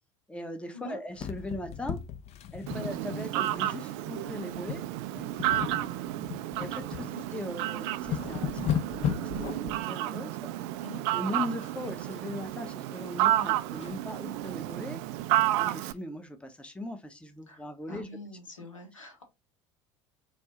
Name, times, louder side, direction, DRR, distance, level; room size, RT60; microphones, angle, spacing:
voice 1, 0.3-2.0 2.5-4.8 5.1-5.5 6.6-10.5 11.1-15.0 15.6-18.1, left 1 dB, 5° left, 0.8 m, -39 dB
sound 1, 1.2-3.6 3.8-4.0 4.5-4.9 5.2-7.1 7.5-7.6 7.9-9.8 11.6-12.2 12.5-14.0 14.4-14.5 14.8-14.9 15.4-15.5, left 9 dB, 40° left, 0.6 m, -35 dB
Fowl, 2.7-15.9, right 14 dB, 60° right, 0.4 m, -31 dB
voice 2, 6.9-7.2 10.8-11.0 17.5-19.2, left 1 dB, 85° left, 1.3 m, -44 dB
4.3 x 2.7 x 3.6 m
figure-of-eight pair, 70°, 16 cm